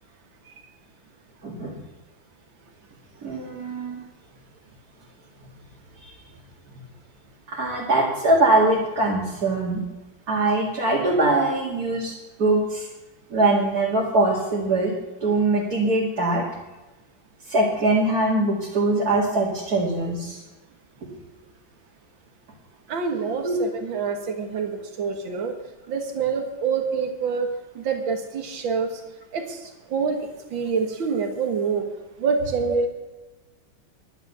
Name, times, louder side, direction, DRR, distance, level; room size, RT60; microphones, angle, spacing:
voice 1, 1.4-1.8 3.2-4.0 6.0-6.1 7.5-9.8 10.3-12.1 12.4-12.9 13.3-14.9 15.2-16.4 17.4-20.4 23.4-23.6, right 2 dB, 50° right, -4 dB, 2.7 m, -22 dB
voice 2, 22.9-25.5 25.9-27.5 27.8-28.9 29.3-31.9 32.2-32.9, right 5 dB, 75° right, 5 dB, 2.3 m, -26 dB
11.5 x 11.0 x 6.9 m, 1.1 s
omnidirectional pair, 2.2 m